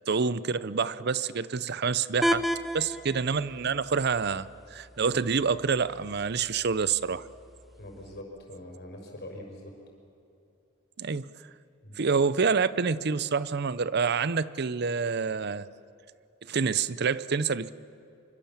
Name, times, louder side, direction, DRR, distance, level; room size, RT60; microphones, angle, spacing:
voice 1, 0.1-2.4 2.7-7.3 11.0-11.3 12.0-15.7 16.5-17.7, right 5 dB, 55° right, 17 dB, 0.6 m, -27 dB
sound 1, 2.2-8.2, equal, ahead, 0.8 m, -35 dB
voice 2, 7.8-9.8 11.8-12.0, left 1 dB, 55° left, 1 dB, 5.5 m, -43 dB
25.0 x 25.0 x 7.3 m, 2.7 s
head